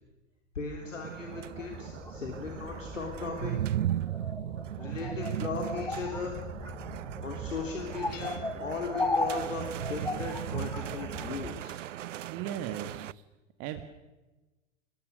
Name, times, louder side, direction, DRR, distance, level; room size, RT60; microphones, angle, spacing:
voice 1, 0.6-3.6 4.8-6.4 7.2-11.8, left 4 dB, 80° left, 2 dB, 3.5 m, -37 dB
sound 1, 0.8-13.1, right 12 dB, 75° right, 0.6 m, -37 dB
sound 2, 1.2-11.6, left 2 dB, 5° left, 1.4 m, -38 dB
Hammer / Chink clink, 8.1-8.9, left 11 dB, 40° left, 3.0 m, -51 dB
voice 2, 12.3-13.2 13.6-13.8, right 10 dB, 40° right, 8 dB, 1.6 m, -37 dB
24.5 x 21.0 x 6.5 m, 1.1 s
hypercardioid pair, 105°, 38 cm